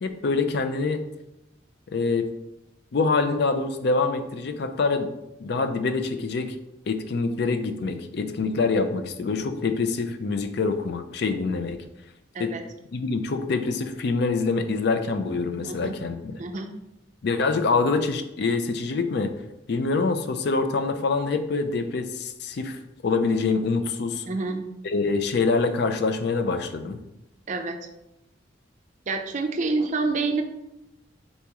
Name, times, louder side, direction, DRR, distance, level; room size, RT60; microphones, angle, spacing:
voice 1, 0.0-1.0 1.9-2.3 2.9-5.1 5.4-6.6 6.9-11.8 12.4-12.5 12.9-16.3 17.2-19.3 19.7-24.2 24.8-27.0, left 4 dB, 60° left, 7 dB, 0.4 m, -25 dB
voice 2, 15.6-16.1 16.4-16.7 24.3-24.6 27.5-27.8 29.1-30.4, right 3 dB, 40° right, 5 dB, 0.4 m, -27 dB
4.0 x 2.9 x 3.5 m, 0.91 s
head